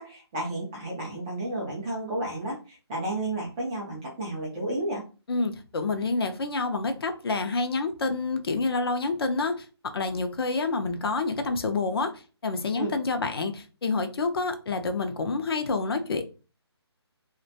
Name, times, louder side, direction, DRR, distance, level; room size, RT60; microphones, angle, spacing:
voice 1, 0.0-5.0 12.8-12.9, right 1 dB, 10° right, -4 dB, 0.3 m, -32 dB
voice 2, 5.3-16.2, left 3 dB, 60° left, 6 dB, 0.4 m, -28 dB
2.4 x 2.1 x 2.6 m, 0.34 s
figure-of-eight pair, 150°, 14 cm